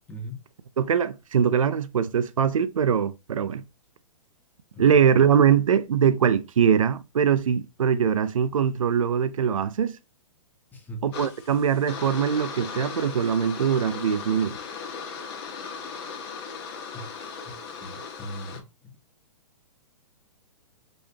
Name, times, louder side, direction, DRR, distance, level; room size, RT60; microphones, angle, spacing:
voice 1, 0.1-0.4 4.7-5.0 10.7-11.0 16.9-17.5 17.8-18.9, right 1 dB, 10° left, 1.4 m, -39 dB
voice 2, 0.8-3.6 4.8-10.0 11.0-14.6, right 8 dB, 85° right, 0.5 m, -22 dB
sound 1, 11.1-18.6, left 5 dB, 50° left, 1.4 m, -37 dB
5.2 x 3.3 x 2.8 m
hypercardioid pair, 125°, 17 cm